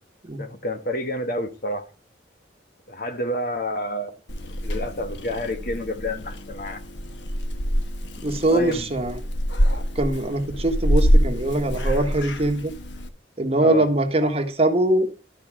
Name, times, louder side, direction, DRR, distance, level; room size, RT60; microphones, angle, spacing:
voice 1, 0.4-1.9 2.9-4.1 4.6-6.8 8.5-8.9 13.6-13.9, left 1 dB, 50° left, 1.3 m, -29 dB
Purr / Meow, 4.3-13.1, equal, 80° left, 1.2 m, -25 dB
voice 2, 8.2-9.2 9.9-12.7 13.4-15.2, right 1 dB, 35° right, 1.4 m, -22 dB
12.5 x 4.9 x 7.4 m
head